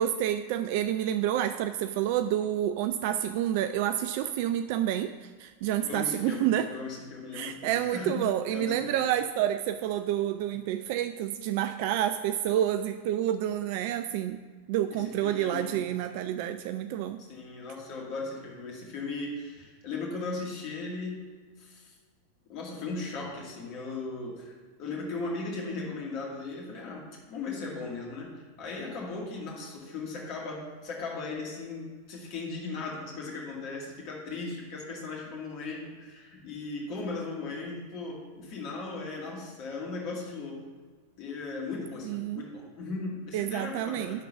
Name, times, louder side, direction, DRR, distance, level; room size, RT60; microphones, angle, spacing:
voice 1, 0.0-6.7 7.3-14.4 14.7-17.2 42.0-42.4 43.3-44.2, right 11 dB, 50° right, 10 dB, 0.3 m, -29 dB
voice 2, 5.8-8.2 8.5-9.1 14.9-15.9 17.2-21.2 21.6-21.9 22.5-40.6 41.2-44.2, left 3 dB, 45° left, -2 dB, 2.2 m, -37 dB
10.5 x 3.8 x 6.9 m, 1.5 s
figure-of-eight pair, 90°, 0 cm